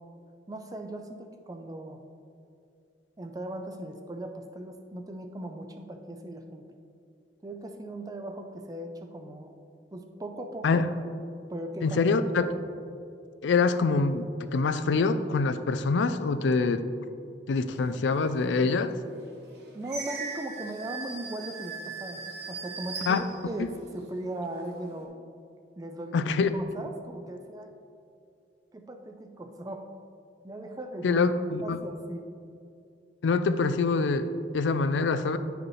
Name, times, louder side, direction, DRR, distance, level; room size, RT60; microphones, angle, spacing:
voice 1, 0.5-2.0 3.2-6.6 7.4-9.5 9.9-10.8 11.5-12.0 19.7-25.1 25.8-27.7 28.7-29.9 30.4-31.2 31.6-32.3, right 1 dB, 20° right, 5 dB, 0.4 m, -38 dB
voice 2, 11.8-12.5 13.4-16.8 17.5-19.0 23.1-23.3 26.1-26.5 31.0-31.8 33.2-35.4, left 4 dB, 90° left, 11 dB, 0.4 m, -25 dB
sound 1, 18.5-18.6 19.2-23.9 24.4-25.0, right 4 dB, 65° right, 1.2 m, -39 dB
10.0 x 4.9 x 3.2 m, 2.5 s
head